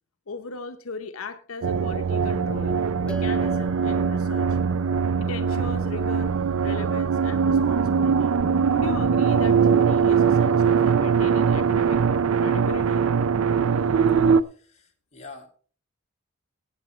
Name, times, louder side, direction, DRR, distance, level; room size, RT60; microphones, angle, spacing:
voice 1, 0.3-2.8 3.0-4.5 5.2-6.3 6.6-8.4 8.7-12.0 12.4-13.0, left 4 dB, 80° left, 7 dB, 0.9 m, -37 dB
sound 1, 1.6-14.4, right 6 dB, 90° right, 0.5 m, -21 dB
sound 2, 3.1-7.8, right 4 dB, 5° left, 0.7 m, -43 dB
voice 2, 14.4-15.5, left 3 dB, 35° left, 1 dB, 2.1 m, -46 dB
16.5 x 8.9 x 3.2 m, 0.41 s
head